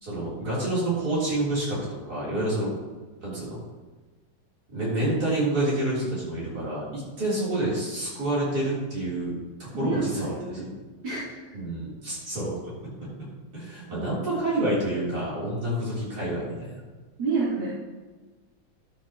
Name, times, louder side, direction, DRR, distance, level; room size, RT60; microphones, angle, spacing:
voice 1, 0.0-2.8 3.2-3.6 4.7-9.3 9.6-10.6 11.5-12.7 13.0-13.3 13.5-16.8, right 1 dB, 55° right, -8 dB, 4.2 m, -28 dB
voice 2, 9.7-10.7 11.0-11.2 13.9-14.1 17.2-17.7, right 4 dB, 80° right, -10 dB, 3.6 m, -28 dB
12.5 x 8.3 x 3.0 m, 1.3 s
omnidirectional pair, 2.0 m